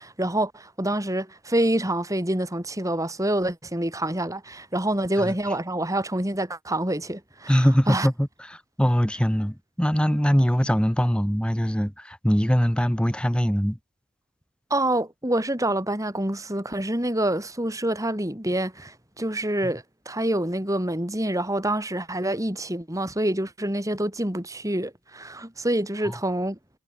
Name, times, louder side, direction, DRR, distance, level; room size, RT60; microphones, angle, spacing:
voice 1, 0.0-8.1 14.7-26.6, right 1 dB, 15° right, 3.3 m, -27 dB
voice 2, 7.5-13.8 19.6-19.7 26.0-26.2, equal, 5° left, 1.8 m, -22 dB
head